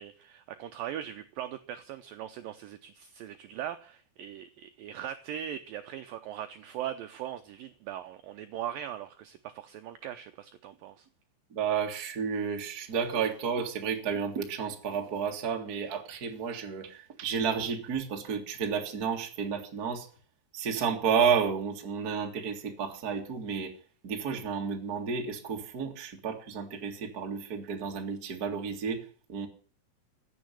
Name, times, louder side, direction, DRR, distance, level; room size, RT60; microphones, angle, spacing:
voice 1, 0.0-11.1, right 10 dB, 85° right, 1.9 m, -40 dB
voice 2, 11.5-20.1 20.5-23.7 24.0-29.5, right 6 dB, 45° right, 1.2 m, -31 dB
16.0 x 7.0 x 9.8 m
omnidirectional pair, 5.1 m